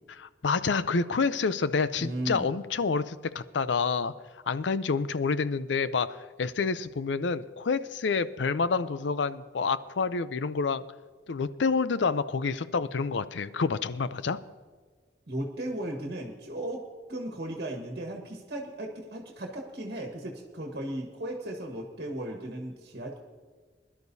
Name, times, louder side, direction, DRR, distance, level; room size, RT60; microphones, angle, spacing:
voice 1, 0.2-4.1 4.5-10.8 11.3-14.4, left 4 dB, 90° left, 14 dB, 0.5 m, -28 dB
voice 2, 2.0-2.5 15.3-16.8 17.1-23.2, right 1 dB, 65° right, 2 dB, 1.4 m, -36 dB
21.5 x 11.5 x 2.7 m, 1.5 s
head